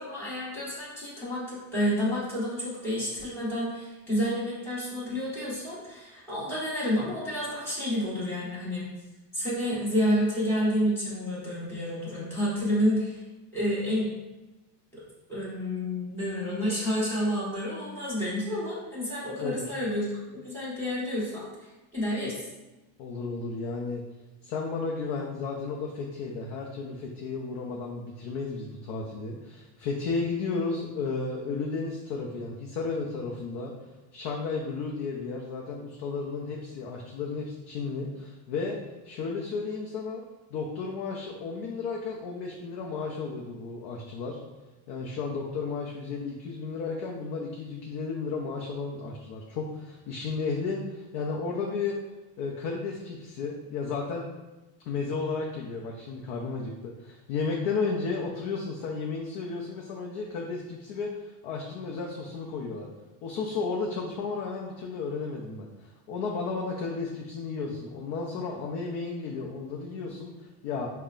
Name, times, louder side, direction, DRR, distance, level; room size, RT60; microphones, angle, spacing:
voice 1, 0.0-8.9 9.3-13.2 13.5-14.1 14.9-15.0 15.3-21.5 21.9-22.4, equal, 5° left, -9 dB, 1.3 m, -29 dB
voice 2, 19.4-19.8 23.0-24.0 24.4-33.7 34.1-38.8 39.0-40.2 40.5-44.4 44.9-52.0 52.4-54.3 54.9-62.9 63.2-70.9, left 4 dB, 65° left, -1 dB, 0.6 m, -33 dB
5.3 x 2.2 x 2.4 m, 1.1 s
cardioid pair, 150°, 47 cm